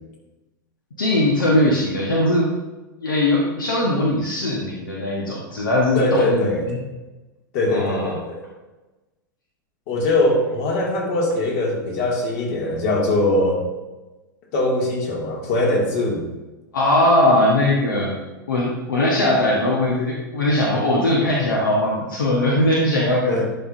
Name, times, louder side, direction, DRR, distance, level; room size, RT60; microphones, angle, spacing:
voice 1, 1.0-2.5 3.0-6.8 7.7-8.2 16.7-18.2 18.5-23.5, left 1 dB, 80° left, -3 dB, 1.3 m, -20 dB
voice 2, 5.9-6.7 7.5-8.4 9.9-13.6 14.5-16.3 23.3-23.5, left 2 dB, 55° left, -1 dB, 2.3 m, -21 dB
10.5 x 5.6 x 2.7 m, 1.1 s
figure-of-eight pair, 95°, 11 cm